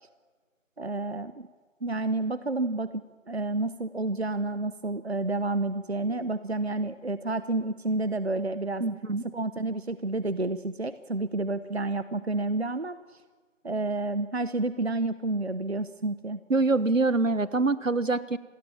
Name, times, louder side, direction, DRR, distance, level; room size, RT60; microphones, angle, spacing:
voice 1, 0.8-1.5 1.8-3.0 3.3-8.8 9.2-13.0 13.6-16.4, right 2 dB, 55° right, 14 dB, 1.0 m, -30 dB
voice 2, 8.8-9.2 16.5-18.4, right 3 dB, 75° right, 16 dB, 1.4 m, -25 dB
27.0 x 19.5 x 7.1 m, 1.5 s
figure-of-eight pair, 175°, 39 cm